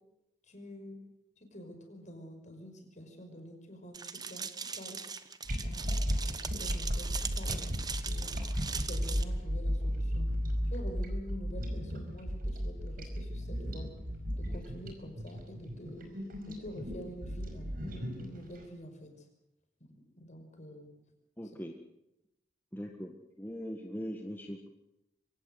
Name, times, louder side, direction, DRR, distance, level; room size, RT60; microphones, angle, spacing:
voice 1, 0.4-1.0 1.4-4.5 4.7-5.0 5.6-8.3 8.7-10.3 10.7-13.9 14.4-16.1 16.5-19.3 20.2-20.9, equal, 40° left, 4 dB, 5.7 m, -47 dB
sound 1, 3.9-9.2, right 5 dB, 20° right, 1.2 m, -40 dB
sound 2, 5.4-18.6, equal, 50° right, 5.2 m, -34 dB
voice 2, 21.4-21.8 22.7-24.7, equal, 10° left, 3 dB, 1.6 m, -41 dB
24.0 x 17.5 x 8.0 m, 0.85 s
head